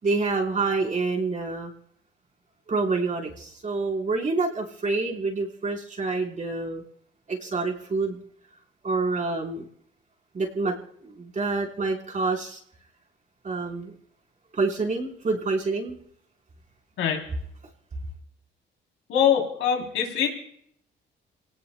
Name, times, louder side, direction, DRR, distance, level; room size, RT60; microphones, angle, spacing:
voice 1, 0.0-1.7 2.7-6.8 7.3-8.2 8.8-9.7 10.3-12.6 13.4-13.9 14.5-16.0, right 3 dB, 40° right, 0 dB, 4.2 m, -27 dB
voice 2, 19.1-20.3, left 8 dB, 85° left, 2 dB, 3.3 m, -23 dB
27.5 x 18.5 x 2.2 m, 0.70 s
cardioid pair, 90°, 20 cm